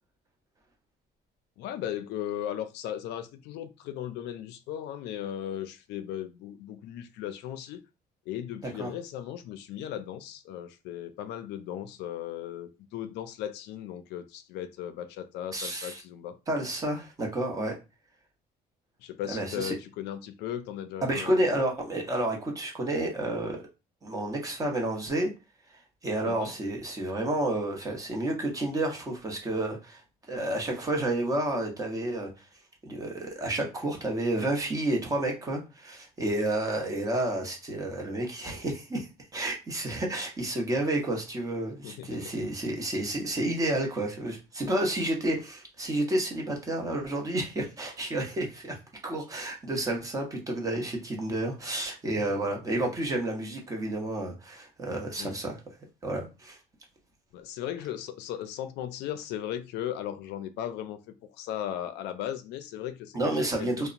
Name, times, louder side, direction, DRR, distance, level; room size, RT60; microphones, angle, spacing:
voice 1, 1.6-7.8 8.3-16.4 19.0-21.7 26.2-26.5 41.8-42.3 52.3-52.4 55.2-55.4 57.3-63.9, left 10 dB, 90° left, 0.4 m, -37 dB
voice 2, 15.5-16.0 16.5-17.8 19.3-19.7 21.0-23.7 24.0-25.3 26.0-30.0 30.3-32.5 32.8-48.7 49.0-55.6 56.0-56.6 63.1-63.9, right 1 dB, 20° right, 0.7 m, -30 dB
2.8 x 2.0 x 2.5 m
cardioid pair, 160°, 17 cm